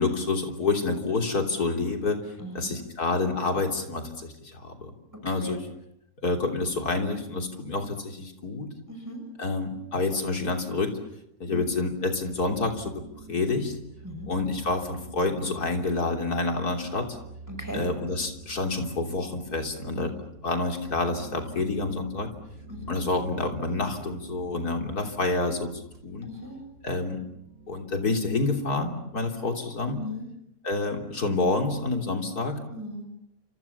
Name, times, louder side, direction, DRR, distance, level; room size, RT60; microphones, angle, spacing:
voice 1, 0.0-4.9 5.2-5.6 6.2-8.7 9.4-11.0 11.4-13.0 13.3-13.7 14.3-17.2 17.7-20.1 20.4-22.3 22.9-26.3 26.8-27.2 27.7-30.0 30.6-32.6, left 3 dB, 65° left, 4 dB, 3.8 m, -28 dB
voice 2, 2.4-2.7 5.4-5.6 8.9-9.2 11.5-11.7 14.0-14.3 17.5-17.9 20.0-20.1 22.7-23.0 26.2-26.6 29.9-30.3 32.7-33.1, left 1 dB, 10° right, 4 dB, 6.0 m, -38 dB
sound 1, 11.6-27.8, right 3 dB, 90° right, 5.2 m, -47 dB
29.5 x 27.0 x 7.2 m, 0.81 s
omnidirectional pair, 1.7 m